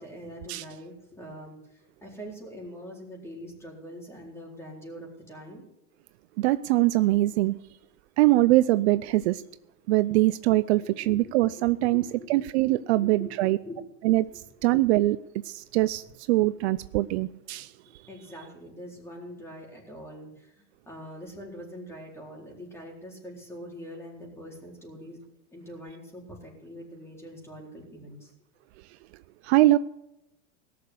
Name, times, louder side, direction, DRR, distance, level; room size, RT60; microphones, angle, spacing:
voice 1, 0.0-5.6 10.8-13.3 13.7-13.9 16.5-16.7 17.0-17.1 18.1-25.2 25.5-28.3, equal, 5° left, 4.2 m, -44 dB
voice 2, 6.4-7.6 8.2-9.4 9.9-12.0 12.3-13.6 14.0-14.2 14.6-15.2 15.5-17.7 29.5-29.8, right 17 dB, 60° right, 0.5 m, -22 dB
18.0 x 6.8 x 8.1 m
supercardioid pair, 135°, 38 cm